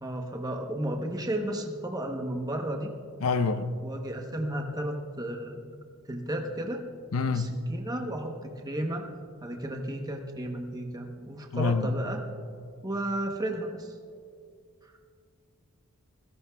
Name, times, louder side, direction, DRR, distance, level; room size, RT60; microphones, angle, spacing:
voice 1, 0.0-2.9 3.8-5.6 6.1-6.8 7.3-9.1 9.4-12.2 12.8-14.0 14.8-14.9, right 1 dB, 20° right, 2 dB, 0.9 m, -33 dB
voice 2, 3.2-3.7 7.1-7.5 11.5-11.9, left 4 dB, 70° left, 11 dB, 0.7 m, -26 dB
26.5 x 16.5 x 2.3 m, 2.2 s
head